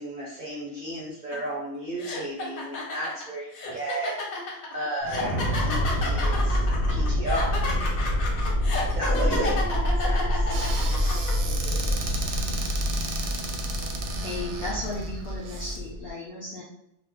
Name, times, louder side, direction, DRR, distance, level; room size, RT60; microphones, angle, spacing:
voice 1, 0.0-4.2 4.7-5.3 5.6-7.7 8.9-9.7 10.0-10.6, right 1 dB, 50° right, -6 dB, 0.6 m, -34 dB
sound 1, 1.3-1.5 2.0-11.3, left 3 dB, 85° left, 1.1 m, -32 dB
sound 2, 5.0-16.1, equal, 45° left, 1.0 m, -27 dB
voice 2, 9.1-12.0, right 1 dB, 15° left, -6 dB, 0.4 m, -37 dB
Squeak / Cupboard open or close, 10.5-15.8, right 3 dB, 90° right, 1.0 m, -35 dB
voice 3, 14.2-16.6, left 2 dB, 65° left, -5 dB, 0.6 m, -35 dB
2.4 x 2.0 x 3.6 m, 0.78 s
omnidirectional pair, 1.4 m